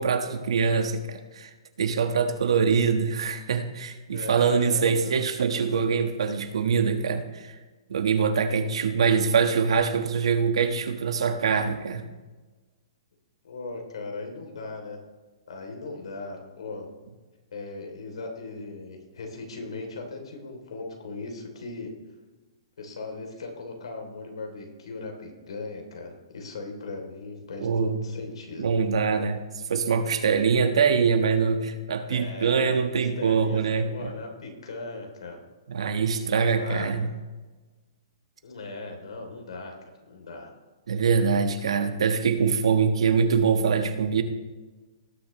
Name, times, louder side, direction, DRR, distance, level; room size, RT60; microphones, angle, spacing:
voice 1, 0.0-1.5 1.8-7.5 7.9-12.1 27.6-28.0 28.6-29.4 29.7-34.1 35.7-37.1 40.9-44.2, right 6 dB, 80° right, 6 dB, 1.4 m, -24 dB
voice 2, 4.1-5.2 13.4-15.0 15.5-16.9 17.5-21.9 22.8-28.7 32.1-32.8 33.2-35.4 36.5-36.9 38.4-39.7 40.1-40.5, left 3 dB, 80° left, 3 dB, 3.1 m, -38 dB
18.5 x 7.1 x 3.1 m, 1.3 s
hypercardioid pair, 170°, 3 cm